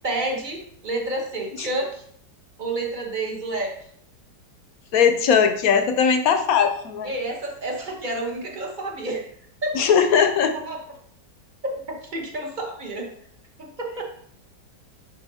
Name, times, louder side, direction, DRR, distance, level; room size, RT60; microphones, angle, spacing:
voice 1, 0.0-2.0 2.6-3.8 7.0-9.3 9.6-9.8 10.7-10.8 11.6-13.1 13.6-14.0, right 2 dB, 35° right, 1 dB, 0.8 m, -29 dB
voice 2, 4.9-7.1 9.7-10.6, left 7 dB, 65° left, 7 dB, 0.9 m, -19 dB
8.9 x 4.1 x 2.7 m, 0.64 s
omnidirectional pair, 1.9 m